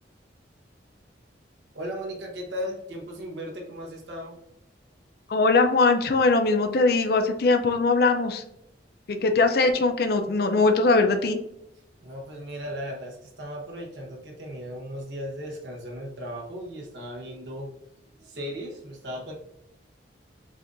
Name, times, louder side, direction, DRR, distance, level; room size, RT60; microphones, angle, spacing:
voice 1, 1.7-4.3 12.0-17.7 18.1-19.3, equal, 75° right, -1 dB, 1.0 m, -36 dB
voice 2, 5.3-8.4 9.1-11.4, left 3 dB, 55° left, 6 dB, 0.5 m, -21 dB
7.0 x 2.5 x 2.6 m, 0.83 s
head